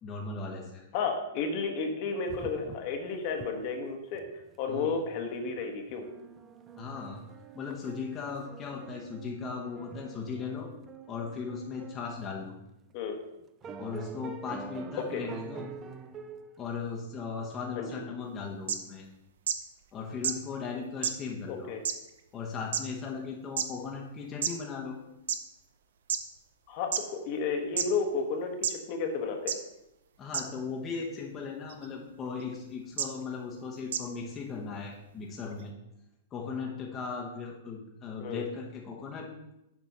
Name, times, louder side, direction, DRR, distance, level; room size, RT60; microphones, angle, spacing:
voice 1, 0.0-0.8 4.7-4.9 6.8-7.2 7.5-10.7 11.1-12.5 13.8-15.6 16.6-19.1 19.9-21.7 22.3-25.0 30.2-35.7 36.3-39.3, left 5 dB, 25° left, -1 dB, 1.1 m, -37 dB
voice 2, 0.9-4.2 4.6-6.0 12.9-13.2 15.1-15.2 17.8-17.9 21.5-21.8 26.7-29.5 38.2-38.4, left 5 dB, 45° left, 4 dB, 1.3 m, -32 dB
sound 1, 2.3-3.0 3.3-3.5 3.8-3.9 4.1-4.5 5.5-5.6 5.9-12.3 12.9-13.0 13.6-16.5, right 6 dB, 25° right, 0.5 m, -45 dB
sound 2, 18.7-18.8 19.5-19.6 20.2-20.3 21.0-21.1 21.8-21.9 22.7-22.8 23.6-23.7 24.4-24.5 25.3-25.4 26.1-26.2 26.9-27.0 27.8-27.9 28.6-28.7 29.5-29.6 30.3-30.4 31.7-31.9 33.0-33.1 33.9-34.0, right 8 dB, 75° right, 0.7 m, -28 dB
7.4 x 4.5 x 5.5 m, 0.90 s
hypercardioid pair, 135°, 0 cm